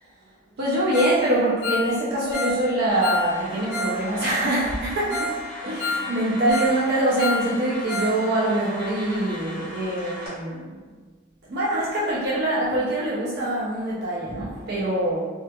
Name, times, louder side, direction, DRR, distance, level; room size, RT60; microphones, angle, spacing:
voice 1, 0.6-10.8 11.4-15.2, right 1 dB, 60° right, -6 dB, 0.4 m, -24 dB
Ringtone, 0.9-1.2 1.5-4.0 4.3-4.4 4.8-4.9 5.1-5.4 5.6-6.8 7.0-8.2 8.4-8.5 9.0-9.1, left 1 dB, 65° left, 1.1 m, -29 dB
sound 1, 2.9-10.3, equal, 30° right, 0.9 m, -38 dB
2.7 x 2.3 x 2.2 m, 1.4 s
head